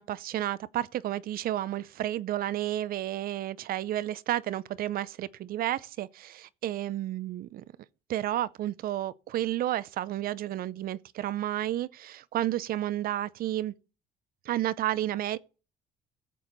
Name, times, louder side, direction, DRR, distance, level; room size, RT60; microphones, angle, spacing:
voice 1, 0.0-7.6 8.1-13.7 14.5-15.4, right 13 dB, 60° right, 0.6 m, -31 dB
13.5 x 7.8 x 4.0 m
cardioid pair, 110°, 17 cm